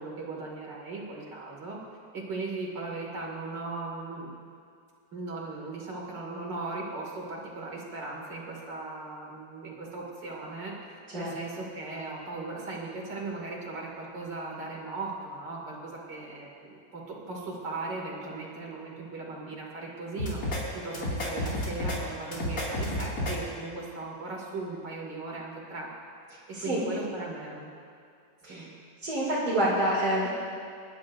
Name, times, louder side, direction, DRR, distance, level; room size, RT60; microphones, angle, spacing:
voice 1, 0.0-1.8 2.1-4.3 5.1-17.0 17.3-20.4 20.7-25.9 26.6-27.7 28.5-28.7, right 3 dB, 85° right, -3 dB, 3.1 m, -38 dB
sound 1, 20.2-20.6 20.9-22.0 22.3-23.3, left 1 dB, 55° left, 3.0 m, -30 dB
voice 2, 26.5-26.8 28.4-28.6 29.0-30.3, right 1 dB, 65° right, -9 dB, 3.4 m, -27 dB
28.0 x 11.5 x 2.6 m, 2.3 s
omnidirectional pair, 1.9 m